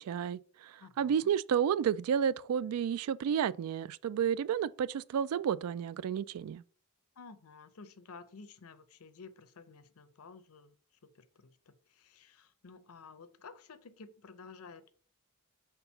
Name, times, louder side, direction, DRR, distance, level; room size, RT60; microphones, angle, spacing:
voice 1, 0.0-6.6, right 8 dB, 75° right, 0.3 m, -31 dB
voice 2, 0.8-1.3 7.2-10.8 11.1-14.9, left 4 dB, 70° left, 0.6 m, -53 dB
4.5 x 3.9 x 5.5 m
head